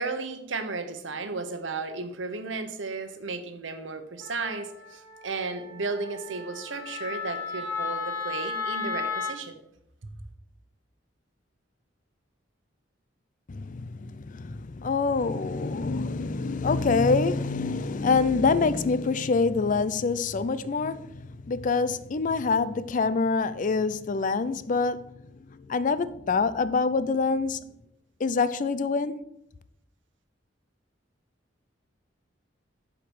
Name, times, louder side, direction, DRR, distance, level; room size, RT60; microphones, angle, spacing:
voice 1, 0.0-9.5 10.0-10.1, right 3 dB, 85° right, 1.0 m, -34 dB
Wind instrument woodwind instrument, 4.2-9.4, left 5 dB, 20° left, 3.4 m, -34 dB
voice 2, 13.5-25.1 25.5-27.6 28.2-29.3, left 4 dB, 45° left, 0.4 m, -26 dB
8.0 x 5.0 x 6.3 m
head